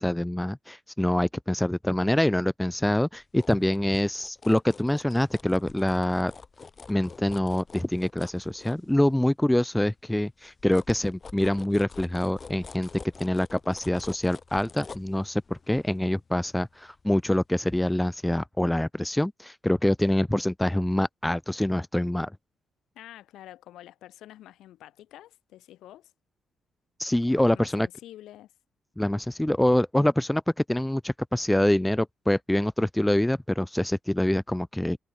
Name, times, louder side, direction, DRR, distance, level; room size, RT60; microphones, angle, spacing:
voice 1, 0.0-6.3 6.9-12.9 13.2-22.3 27.0-27.9 29.0-30.4 30.7-35.0, left 1 dB, 5° left, 0.3 m, -25 dB
sound 1, 3.1-9.4 9.8-17.4 17.8-17.9, left 4 dB, 35° left, 5.8 m, -47 dB
voice 2, 22.9-26.1 27.3-28.5, left 13 dB, 85° left, 5.6 m, -48 dB
cardioid pair, 90°, 0 cm